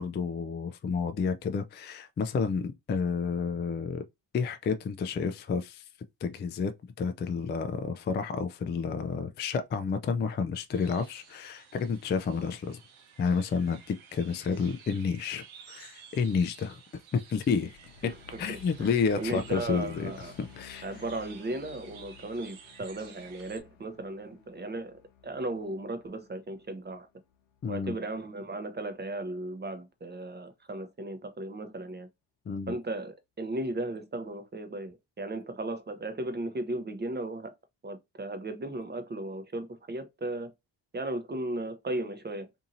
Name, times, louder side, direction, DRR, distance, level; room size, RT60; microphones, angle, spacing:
voice 1, 0.0-4.0 4.3-5.9 6.2-12.8 13.2-16.8 17.1-17.8 18.4-20.1 20.6-20.9 27.6-27.9 32.5-32.7, left 5 dB, 25° left, 0.3 m, -30 dB
sound 1, 10.7-23.6, right 6 dB, 75° right, 0.8 m, -53 dB
sound 2, 17.6-28.1, left 7 dB, 70° left, 0.8 m, -54 dB
voice 2, 18.5-20.4 20.8-27.1 27.7-32.1 32.7-37.5 37.8-40.5 40.9-42.5, right 2 dB, 20° right, 0.7 m, -36 dB
2.7 x 2.7 x 2.6 m
supercardioid pair, 50°, 47 cm